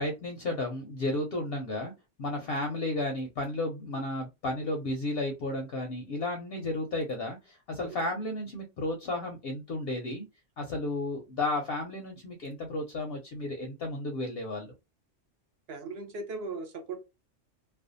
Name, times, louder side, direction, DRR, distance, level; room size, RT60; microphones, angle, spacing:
voice 1, 0.0-1.9 2.2-10.2 10.6-14.7, left 2 dB, 60° left, 3 dB, 0.7 m, -33 dB
voice 2, 15.7-17.0, right 3 dB, 60° right, 5 dB, 0.9 m, -38 dB
2.5 x 2.2 x 2.5 m, 0.25 s
omnidirectional pair, 1.3 m